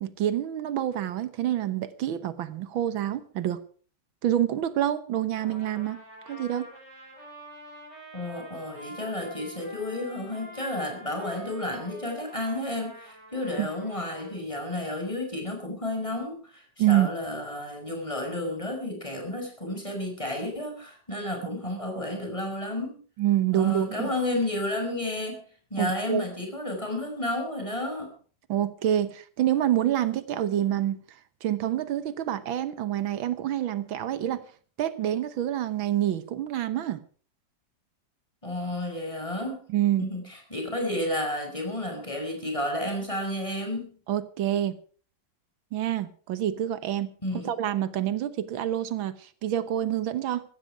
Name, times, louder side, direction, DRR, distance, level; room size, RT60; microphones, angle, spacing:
voice 1, 0.0-3.6 4.2-6.0 6.3-6.7 13.6-13.7 16.8-17.1 23.2-24.1 25.8-26.3 28.5-31.0 31.4-34.4 34.8-37.0 39.7-40.1 44.1-44.8 45.7-47.1 47.5-50.4, right 12 dB, 85° right, 14 dB, 1.8 m, -27 dB
Trumpet, 5.4-14.4, equal, 55° right, 8.8 m, -47 dB
voice 2, 8.1-23.0 23.5-25.4 25.7-28.1 38.4-39.6 40.0-43.9 47.2-47.5, left 1 dB, 15° left, 2 dB, 5.8 m, -31 dB
15.5 x 15.0 x 4.8 m, 0.42 s
omnidirectional pair, 2.1 m